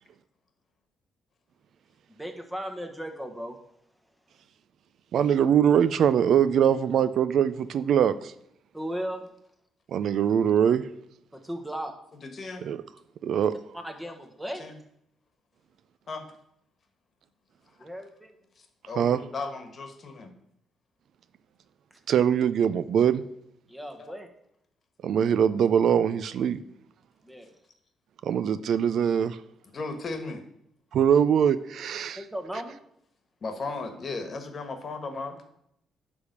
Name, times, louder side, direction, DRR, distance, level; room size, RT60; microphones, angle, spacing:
voice 1, 2.2-3.6 8.7-9.2 11.3-11.9 13.7-14.7 17.8-18.3 23.7-24.3 27.2-27.5 32.2-32.7, equal, 5° right, 5 dB, 1.3 m, -36 dB
voice 2, 5.1-8.3 9.9-10.8 12.6-12.8 13.2-13.5 19.0-19.2 22.1-23.2 25.0-26.6 28.2-29.4 30.9-32.2, right 8 dB, 65° right, 15 dB, 0.4 m, -22 dB
voice 3, 12.2-12.6 14.6-14.7 16.1-16.2 18.9-20.3 24.0-24.1 29.7-30.4 33.4-35.4, left 3 dB, 45° left, 7 dB, 1.4 m, -35 dB
9.8 x 3.5 x 6.6 m, 0.75 s
cardioid pair, 90°, 0 cm